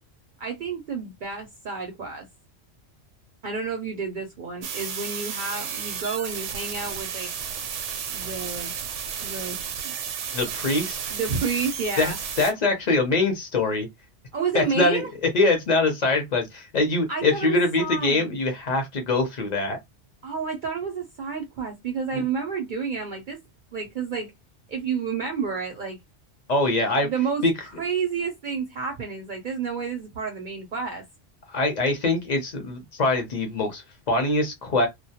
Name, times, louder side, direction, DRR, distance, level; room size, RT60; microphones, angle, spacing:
voice 1, 0.4-2.3 3.4-7.3 8.1-8.7 9.2-9.6 9.8-9.9 11.1-12.2 14.3-15.1 17.1-18.2 20.2-23.4 23.7-24.3 24.7-26.0 27.0-27.4 27.8-31.0, right 5 dB, 60° right, 0.5 m, -30 dB
sound 1, 4.6-12.5, right 7 dB, 80° right, 0.9 m, -33 dB
voice 2, 10.3-11.0 12.0-12.1 12.4-13.9 14.5-15.0 15.3-19.8 22.1-22.2 26.5-27.1 27.4-27.5 31.5-34.9, left 2 dB, 45° left, 0.6 m, -23 dB
2.1 x 2.1 x 2.7 m
omnidirectional pair, 1.2 m